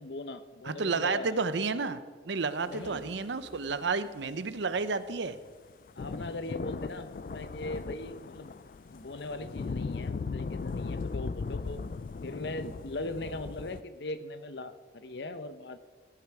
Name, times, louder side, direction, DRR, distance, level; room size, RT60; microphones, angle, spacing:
voice 1, 0.0-1.4 2.6-3.0 6.0-8.5 8.9-11.8 12.2-15.8, left 2 dB, 70° left, 11 dB, 0.8 m, -40 dB
voice 2, 0.6-5.4 11.8-11.9, right 4 dB, 80° right, 13 dB, 0.7 m, -31 dB
sound 1, 2.7-5.3, right 1 dB, 10° right, 1.8 m, -54 dB
sound 2, 4.8-13.8, left 4 dB, 45° left, 0.3 m, -38 dB
16.0 x 9.7 x 4.8 m, 1.4 s
head